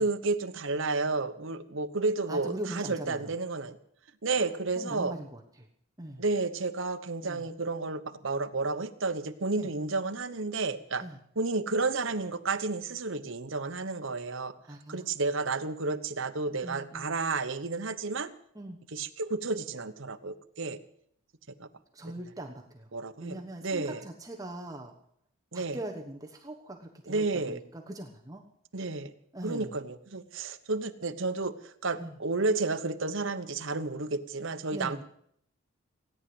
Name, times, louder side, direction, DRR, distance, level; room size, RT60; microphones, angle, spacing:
voice 1, 0.0-3.8 4.2-5.1 6.2-11.0 11.4-14.5 14.9-18.3 18.9-20.8 21.6-21.7 22.9-24.0 25.5-25.8 27.1-27.6 28.7-29.1 29.4-35.0, right 3 dB, 60° right, 8 dB, 1.0 m, -31 dB
voice 2, 2.3-3.3 4.8-5.7 6.0-6.2 7.2-7.4 9.6-9.7 11.0-11.2 14.7-15.1 16.6-17.1 18.5-18.8 21.9-22.9 23.2-24.9 25.5-28.4 29.3-29.8 32.0-32.1 34.7-35.0, right 1 dB, 15° right, 2 dB, 1.1 m, -41 dB
17.0 x 10.0 x 7.8 m, 0.68 s
head